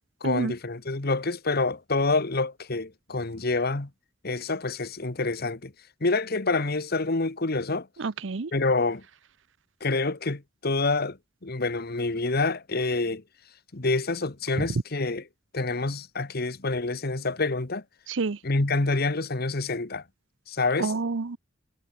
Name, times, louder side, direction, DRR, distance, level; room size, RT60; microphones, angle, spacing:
voice 1, 0.2-3.9 4.2-5.7 6.0-7.9 8.5-9.0 9.8-13.2 13.7-15.2 15.5-17.8 18.4-20.0 20.5-20.9, left 3 dB, 55° left, 1.5 m, -27 dB
voice 2, 8.0-8.5 14.6-14.7 18.1-18.4 20.8-21.4, right 4 dB, 70° right, 0.7 m, -28 dB
head